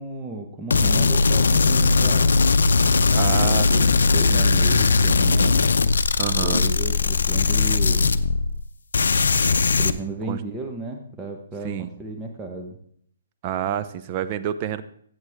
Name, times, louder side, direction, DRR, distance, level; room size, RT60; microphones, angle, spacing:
voice 1, 0.0-2.4 3.2-3.8 4.1-5.7 6.4-8.1 9.8-12.8, right 2 dB, 10° right, 1 dB, 1.2 m, -33 dB
sound 1, 0.7-8.7 8.9-9.9, left 4 dB, 85° left, 0.6 m, -19 dB
voice 2, 3.1-4.0 6.2-6.6 10.3-10.4 11.6-11.9 13.4-14.8, right 10 dB, 35° right, 11 dB, 0.7 m, -28 dB
15.0 x 8.0 x 3.6 m, 0.64 s
hypercardioid pair, 150°, 0 cm